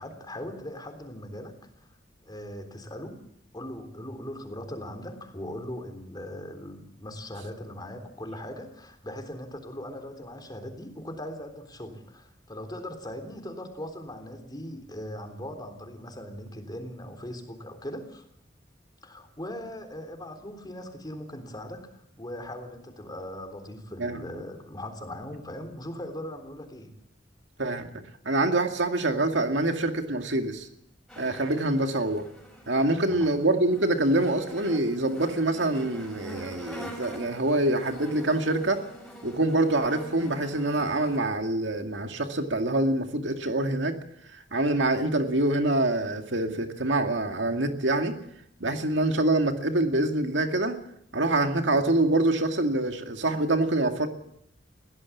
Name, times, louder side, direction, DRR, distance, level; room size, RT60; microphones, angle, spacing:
voice 1, 0.0-1.9 2.2-3.2 3.5-18.3 19.0-26.9 32.9-33.3, left 1 dB, 25° left, 6 dB, 3.6 m, -39 dB
voice 2, 28.2-30.7 31.2-32.3 32.7-38.8 39.2-44.0 44.3-48.2 48.6-50.8 51.1-54.1, right 2 dB, 70° right, 5 dB, 2.3 m, -25 dB
sound 1, 31.1-41.2, equal, 5° left, 6.9 m, -45 dB
22.0 x 17.0 x 7.3 m, 0.73 s
head